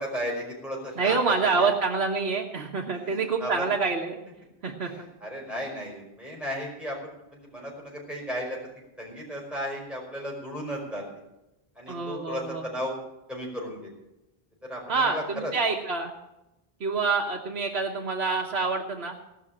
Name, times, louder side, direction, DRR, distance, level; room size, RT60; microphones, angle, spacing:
voice 1, 0.0-1.2 1.6-1.7 2.9-3.7 4.8-7.0 7.3-8.6 9.0-11.0 11.8-12.9 13.3-13.9 14.7-15.5, equal, ahead, -2 dB, 5.2 m, -35 dB
voice 2, 1.0-4.2 4.6-5.1 11.9-12.7 14.9-16.1 16.8-19.1, right 4 dB, 75° right, -1 dB, 1.4 m, -27 dB
18.0 x 6.1 x 8.7 m, 0.94 s
omnidirectional pair, 1.1 m